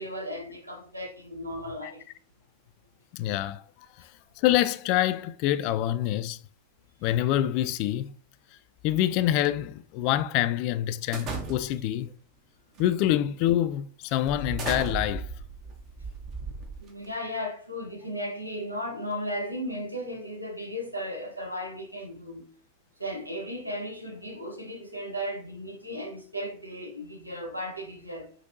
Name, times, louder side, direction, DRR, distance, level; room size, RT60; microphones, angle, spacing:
voice 1, 0.0-2.1 16.8-22.5 23.0-28.3, equal, 85° right, 0.9 m, -35 dB
voice 2, 3.1-3.6 4.0-4.1 4.4-6.4 7.0-8.1 8.8-12.1 12.8-15.3, left 13 dB, 45° left, 0.3 m, -26 dB
sound 1, 11.1-11.9 12.7-13.0 13.5-13.6 14.3-17.2, right 3 dB, 35° right, 0.9 m, -36 dB
5.2 x 2.8 x 2.6 m
figure-of-eight pair, 90°, 0 cm